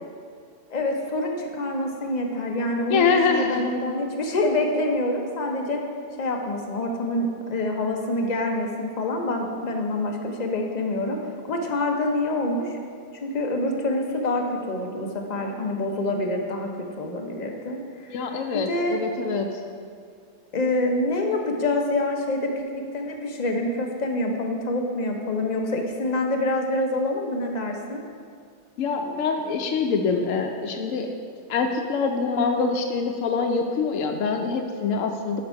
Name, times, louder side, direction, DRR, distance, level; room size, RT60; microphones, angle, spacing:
voice 1, 0.7-5.8 6.2-12.8 13.2-16.7 17.0-18.2 18.5-19.0 20.5-28.0, left 1 dB, 40° left, 2 dB, 0.7 m, -26 dB
voice 2, 2.9-3.6 18.1-19.6 28.8-31.1 31.5-35.4, left 5 dB, 80° left, 3 dB, 1.0 m, -24 dB
6.6 x 5.2 x 5.7 m, 2.2 s
omnidirectional pair, 1.3 m